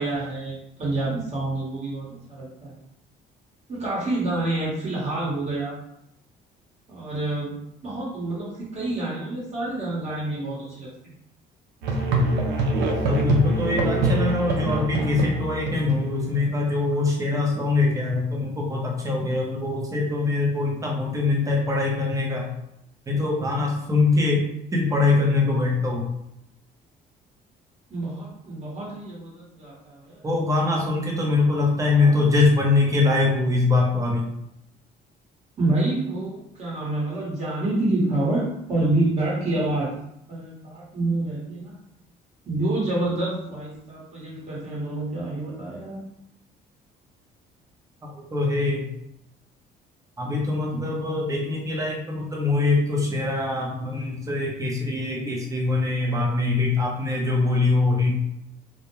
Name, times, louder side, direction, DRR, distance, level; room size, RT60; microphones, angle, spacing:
voice 1, 0.0-2.7 3.7-5.8 6.9-11.1 27.9-30.2 31.9-32.2 35.6-39.9 40.3-41.8 42.4-46.1, right 2 dB, 40° right, -5 dB, 1.2 m, -28 dB
Musical instrument, 11.8-16.6, right 1 dB, 90° right, 0.5 m, -24 dB
voice 2, 13.1-22.5 23.1-24.4 24.7-26.1 30.2-34.3 48.0-48.9 50.2-58.2, left 3 dB, 20° right, -2 dB, 0.7 m, -23 dB
2.4 x 2.1 x 3.0 m, 0.78 s
cardioid pair, 110°, 17 cm